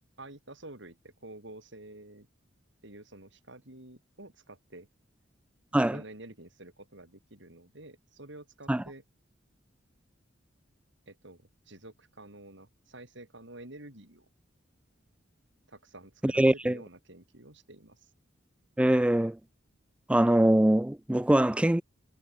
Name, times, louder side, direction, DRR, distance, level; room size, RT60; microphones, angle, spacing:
voice 1, 0.2-2.3 2.8-4.9 5.7-9.0 11.1-14.3 15.7-18.1, right 2 dB, 65° right, 4.5 m, -49 dB
voice 2, 16.2-16.8 18.8-19.4 20.1-21.8, right 1 dB, 5° right, 0.3 m, -23 dB
head